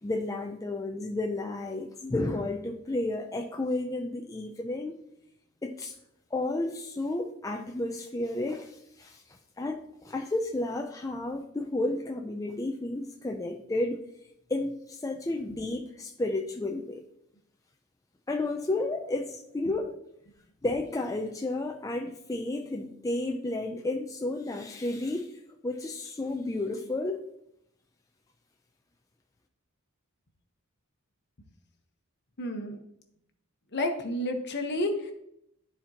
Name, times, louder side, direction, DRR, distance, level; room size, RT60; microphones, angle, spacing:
voice 1, 0.0-5.0 5.6-5.9 6.3-14.0 14.5-17.0 18.3-20.0 20.6-27.2, left 2 dB, 15° left, 3 dB, 0.4 m, -32 dB
voice 2, 32.4-32.8 33.7-35.1, left 1 dB, 50° left, 5 dB, 1.1 m, -30 dB
12.5 x 4.4 x 2.9 m, 0.75 s
head